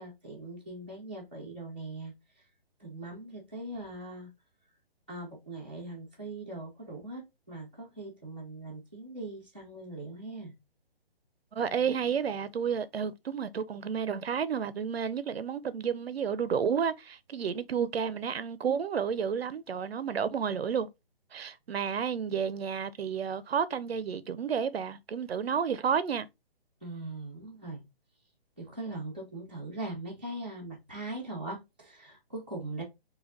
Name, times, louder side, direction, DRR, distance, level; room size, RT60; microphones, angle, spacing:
voice 1, 0.0-2.1 2.8-4.3 5.1-10.5 26.8-27.8 28.6-32.8, right 2 dB, 10° right, 0.6 m, -41 dB
voice 2, 11.5-20.9 21.3-26.3, right 7 dB, 85° right, 0.7 m, -31 dB
4.1 x 2.8 x 3.8 m
hypercardioid pair, 180°, 30 cm